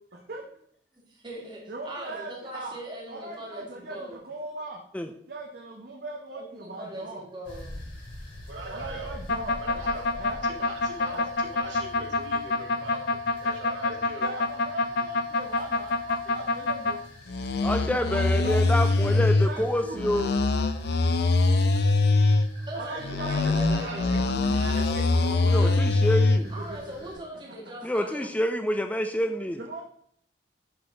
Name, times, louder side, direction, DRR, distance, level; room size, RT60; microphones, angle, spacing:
voice 1, 0.9-4.2 6.4-7.8 22.6-24.1 26.5-28.3, right 1 dB, 25° right, -3 dB, 2.1 m, -40 dB
voice 2, 1.7-2.8 3.1-4.8 5.3-7.2 8.7-9.6 10.1-10.4 11.1-11.2 13.4-13.5 14.2-17.0 17.9-20.1 22.7-24.6 26.0-26.1 26.4-27.1 29.6-29.8, right 2 dB, 55° right, 0 dB, 0.9 m, -39 dB
sound 1, 7.4-27.2, left 1 dB, 90° left, 3.2 m, -47 dB
voice 3, 8.5-9.1 9.6-10.0 10.4-14.3 22.5-24.2 24.5-25.9, right 2 dB, 85° right, -2 dB, 2.4 m, -40 dB
sound 2, 9.3-17.0 17.3-19.5 20.0-22.5 23.0-26.4, left 3 dB, 60° left, 0.5 m, -24 dB
voice 4, 17.6-20.3 25.5-26.5 27.8-29.6, equal, 10° left, 7 dB, 0.4 m, -27 dB
11.0 x 4.1 x 3.8 m, 0.69 s
head